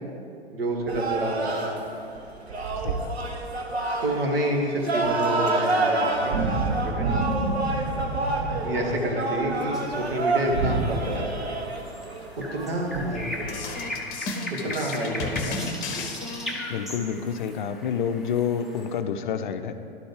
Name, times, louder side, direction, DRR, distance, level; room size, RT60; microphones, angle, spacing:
voice 1, 0.5-1.6 4.0-6.3 6.8-7.1 8.6-11.5 12.4-13.9 14.5-15.6 15.9-16.0, right 1 dB, 65° right, 0 dB, 1.7 m, -29 dB
sound 1, 0.9-13.8, right 2 dB, 85° right, 1.1 m, -27 dB
voice 2, 2.8-3.3 14.7-14.8 16.7-19.9, left 7 dB, 50° left, 9 dB, 0.5 m, -29 dB
sound 2, 9.7-19.0, left 1 dB, ahead, 0.6 m, -39 dB
sound 3, 13.4-16.9, left 3 dB, 30° left, 0.9 m, -33 dB
11.5 x 4.3 x 4.8 m, 2.5 s
figure-of-eight pair, 105°, 31 cm